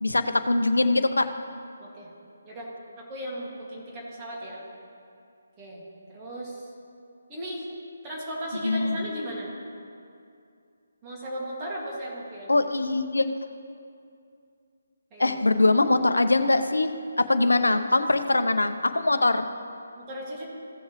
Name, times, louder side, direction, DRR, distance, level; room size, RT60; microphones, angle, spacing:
voice 1, 0.0-1.3 8.6-9.1 12.5-13.3 15.2-16.9 17.2-19.5, left 2 dB, 75° left, 10 dB, 0.7 m, -22 dB
voice 2, 1.8-2.1 2.4-2.7 3.0-4.6 5.6-5.8 6.1-6.7 7.3-7.7 8.0-9.5 11.0-12.5 15.1-15.4 17.2-17.5 20.0-20.4, equal, 20° right, -5 dB, 2.1 m, -36 dB
16.0 x 7.2 x 3.2 m, 2.4 s
figure-of-eight pair, 145°, 0 cm